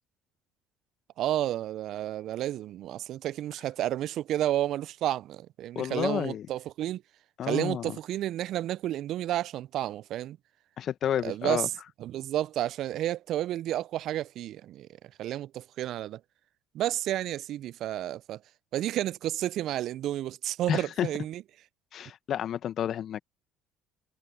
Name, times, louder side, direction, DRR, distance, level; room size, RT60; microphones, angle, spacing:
voice 1, 1.2-7.0 7.4-10.4 11.2-11.7 12.0-14.9 15.2-16.2 16.7-18.4 18.7-21.4, right 13 dB, 60° right, 0.5 m, -31 dB
voice 2, 5.7-6.5 7.4-8.0 10.8-11.7 20.7-21.1 21.9-23.2, left 10 dB, 55° left, 1.5 m, -30 dB
hypercardioid pair, 55°, 0 cm